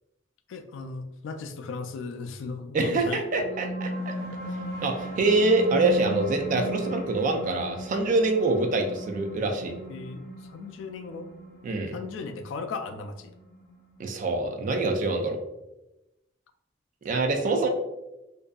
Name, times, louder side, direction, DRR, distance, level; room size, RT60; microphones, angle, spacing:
voice 1, 0.5-3.2 9.9-10.2 10.5-11.3 11.9-13.3, left 4 dB, 80° left, 6 dB, 0.3 m, -36 dB
voice 2, 2.7-4.1 4.8-9.7 11.6-12.0 14.0-15.4 17.0-17.7, right 2 dB, 45° right, 4 dB, 0.3 m, -25 dB
sound 1, 3.1-14.1, right 2 dB, 40° left, 0.7 m, -37 dB
2.6 x 2.2 x 2.3 m, 0.95 s
head